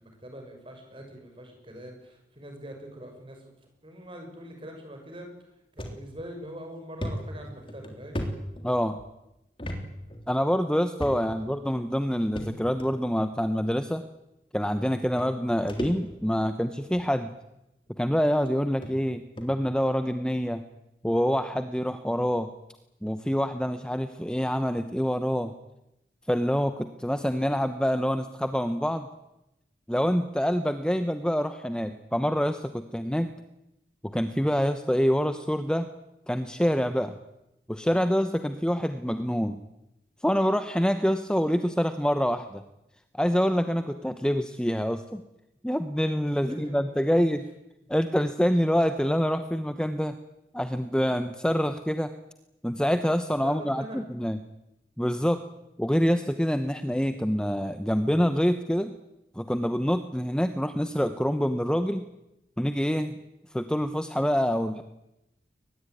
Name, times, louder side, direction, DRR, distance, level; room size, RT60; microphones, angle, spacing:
voice 1, 0.0-3.4 3.8-5.3 5.7-8.2 11.1-11.4 46.5-47.3 53.4-54.0, equal, 30° right, 3 dB, 6.3 m, -43 dB
sound 1, 5.8-6.0 6.4-6.5 7.0-9.0 9.6-9.8 10.1-10.2 11.0-11.5 12.4-12.9 13.8-13.9 14.8-14.9 15.2-16.4 16.8-17.1 17.9-18.0 18.4-18.5 18.8-18.9 19.4-19.6, equal, 30° left, 3.4 m, -35 dB
voice 2, 8.6-9.0 10.3-14.0 14.5-17.3 18.0-20.6 21.0-22.5 23.0-25.5 26.3-29.1 29.9-33.3 34.1-35.9 36.3-37.2 37.7-39.6 40.2-42.6 43.2-45.2 45.6-47.4 47.9-50.1 50.5-52.1 52.6-54.4 55.0-55.4 55.8-58.9 59.4-62.0 62.6-63.1 63.5-64.8, equal, 5° left, 9 dB, 0.9 m, -26 dB
22.5 x 20.0 x 9.4 m, 0.91 s
head